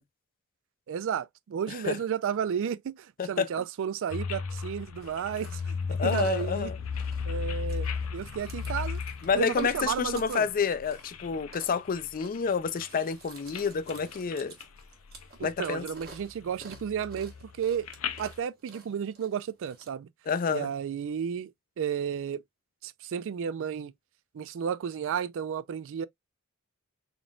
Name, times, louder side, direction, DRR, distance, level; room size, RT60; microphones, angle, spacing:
voice 1, 0.9-5.8 6.0-6.7 7.3-9.0 9.3-10.5 15.4-17.9 18.2-20.1 20.5-21.5 21.8-22.4 22.8-23.9 24.3-26.1, right 8 dB, 60° right, 0.3 m, -32 dB
sound 1, 4.1-11.5 11.9-13.0 13.4-13.6 13.9-14.8 15.1-15.7 16.0-18.4, left 5 dB, 75° left, 0.7 m, -35 dB
Chewing mastication, 5.0-19.9, right 3 dB, 45° right, 1.3 m, -53 dB
voice 2, 5.9-6.8 9.2-14.5 15.4-15.9 20.3-20.7, left 6 dB, 40° left, 0.4 m, -29 dB
3.7 x 3.6 x 2.3 m
head